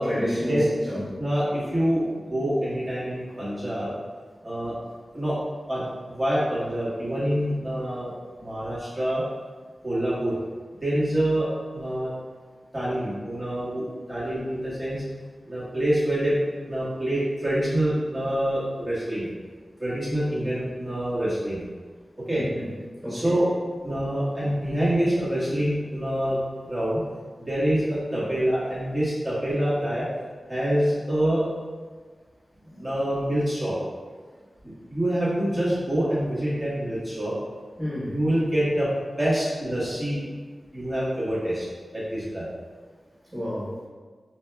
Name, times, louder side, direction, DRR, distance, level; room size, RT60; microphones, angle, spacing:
voice 1, 0.0-1.1 22.3-22.7 23.0-23.4 32.6-32.8 37.8-38.1 43.3-43.7, equal, 25° right, -10 dB, 1.4 m, -29 dB
voice 2, 1.2-2.0 2.3-3.9 4.4-4.7 5.1-5.4 5.7-5.9 6.1-8.1 8.4-9.2 9.8-10.4 10.8-11.5 11.7-12.1 12.7-13.8 14.1-15.0 15.5-16.3 16.7-19.2 19.8-21.6 22.3-22.4 23.1-23.5 23.8-27.0 27.5-30.0 30.5-31.4 32.8-33.7 34.6-37.3 38.1-38.9 39.2-40.2 40.7-41.6 41.9-42.5, right 1 dB, 5° right, -11 dB, 1.4 m, -26 dB
3.4 x 2.7 x 3.3 m, 1.5 s
wide cardioid pair, 75°, 0 cm